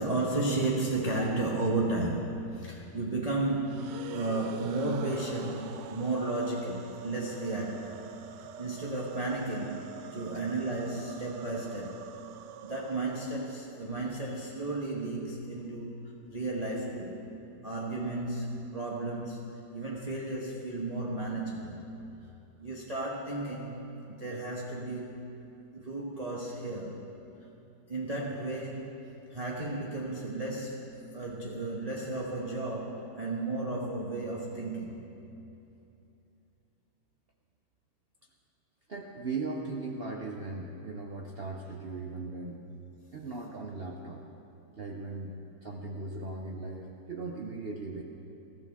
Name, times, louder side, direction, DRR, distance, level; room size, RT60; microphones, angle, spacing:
voice 1, 0.0-8.0 8.6-9.8 10.1-12.0 12.6-17.3 17.6-19.5 19.7-21.9 22.6-25.2 25.7-27.0 27.9-29.0 29.3-30.8 31.1-35.0, right 2 dB, 25° right, -4 dB, 1.1 m, -33 dB
sound 1, 3.6-13.9, right 9 dB, 75° right, 1.1 m, -46 dB
voice 2, 38.9-42.6 43.1-44.2 44.8-48.0, right 3 dB, 60° right, 0 dB, 0.6 m, -38 dB
21.5 x 13.5 x 3.6 m, 2.8 s
omnidirectional pair, 2.2 m